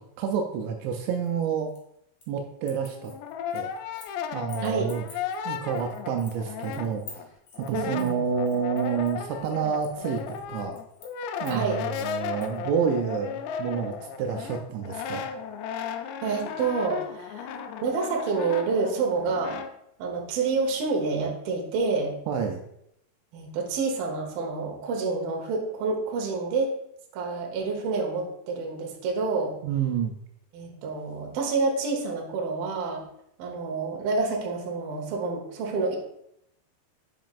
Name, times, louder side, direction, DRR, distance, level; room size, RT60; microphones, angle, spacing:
voice 1, 0.0-1.7 2.3-3.1 3.5-3.7 4.3-5.0 5.5-7.2 7.6-10.8 11.4-15.4 22.3-22.6 29.6-30.1, right 6 dB, 85° right, 3 dB, 2.8 m, -29 dB
sound 1, 1.2-2.4 2.6-4.2 4.5-12.6, left 4 dB, 55° left, 1.6 m, -50 dB
Brass instrument, 2.8-7.3 7.5-19.7, left 7 dB, 80° left, 2.5 m, -35 dB
voice 2, 4.6-4.9 7.7-8.2 11.5-11.8 16.2-17.5 17.8-19.6 20.0-22.2 23.3-26.7 27.1-29.5 30.5-33.0 33.4-36.0, right 4 dB, 70° right, 0 dB, 2.5 m, -28 dB
9.2 x 5.0 x 2.4 m, 0.76 s
omnidirectional pair, 5.2 m